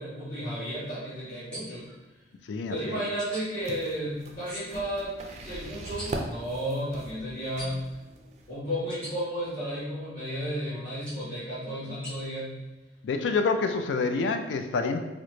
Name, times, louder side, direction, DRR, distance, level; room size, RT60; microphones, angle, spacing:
voice 1, 0.0-1.8 2.7-7.8 8.5-12.6, equal, 45° left, -14 dB, 1.3 m, -33 dB
sound 1, 1.5-1.9 3.2-3.4 4.4-4.8 5.8-6.1 7.6-7.9 8.9-9.1 11.1-11.3 12.0-12.1, equal, 5° left, 0.9 m, -41 dB
voice 2, 2.5-3.1 13.0-15.0, left 4 dB, 75° left, 6 dB, 0.3 m, -27 dB
sound 2, 3.6-8.6, right 1 dB, 40° right, 0.3 m, -40 dB
3.8 x 2.1 x 3.1 m, 1.2 s
head